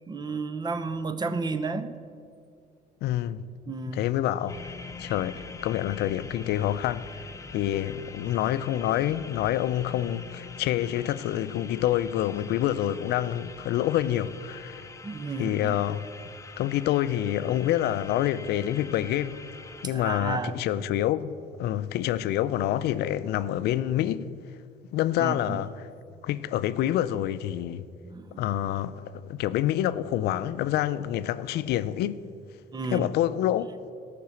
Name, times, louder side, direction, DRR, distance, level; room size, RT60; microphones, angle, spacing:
voice 1, 0.1-2.0 3.7-4.1 15.0-15.7 19.8-20.6 25.2-25.6 28.0-28.4 32.7-33.1, right 4 dB, 25° right, 0.7 m, -32 dB
voice 2, 3.0-3.4 3.9-4.6 5.0-7.1 7.5-14.9 15.4-16.0 16.6-19.4 19.8-24.3 24.9-25.9 26.2-27.8 28.4-32.2 32.9-33.7, left 12 dB, 75° left, 0.5 m, -27 dB
sound 1, 4.5-19.9, left 4 dB, 20° left, 0.6 m, -44 dB
13.5 x 5.9 x 7.7 m
cardioid pair, 110°, 17 cm